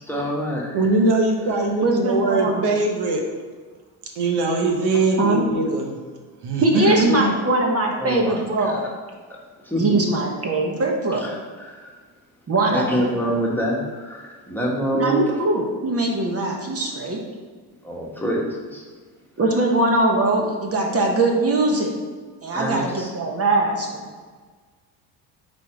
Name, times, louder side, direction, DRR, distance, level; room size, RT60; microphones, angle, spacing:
voice 1, 0.1-0.8 6.8-6.9 8.0-8.8 9.6-9.8 11.1-11.2 11.6-11.9 12.7-15.2 17.8-18.8 22.5-23.1, equal, 5° left, -4 dB, 1.4 m, -26 dB
voice 2, 0.7-3.2 4.1-5.9 6.4-7.3, right 2 dB, 65° right, 2 dB, 1.1 m, -21 dB
voice 3, 1.8-2.7 5.2-5.4 6.6-8.8 9.8-11.2 12.5-13.0 14.9-17.2 19.4-21.9 22.4-24.1, right 2 dB, 35° right, 0 dB, 1.1 m, -21 dB
4.5 x 4.4 x 4.8 m, 1.5 s
supercardioid pair, 80°, 43 cm